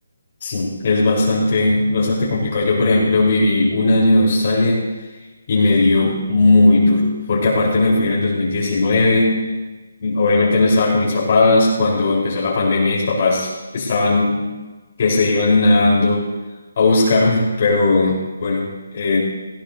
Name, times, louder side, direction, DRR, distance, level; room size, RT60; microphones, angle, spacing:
voice 1, 0.4-4.9 5.5-9.5 10.0-13.5 13.7-14.5 15.0-16.3 16.8-19.2, left 2 dB, 45° left, -5 dB, 4.0 m, -17 dB
18.5 x 16.5 x 2.7 m, 1.2 s
hypercardioid pair, 160°, 0 cm